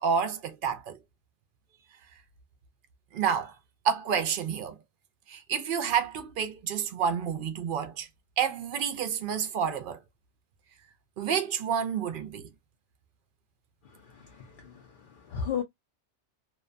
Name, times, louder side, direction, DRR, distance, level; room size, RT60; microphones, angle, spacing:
voice 1, 0.0-1.0 3.1-3.5 3.8-4.8 5.3-8.1 8.4-10.0 11.2-12.5, right 7 dB, 60° right, 0.6 m, -29 dB
voice 2, 13.8-15.6, left 7 dB, 60° left, 0.6 m, -36 dB
2.5 x 2.1 x 2.3 m
omnidirectional pair, 1.2 m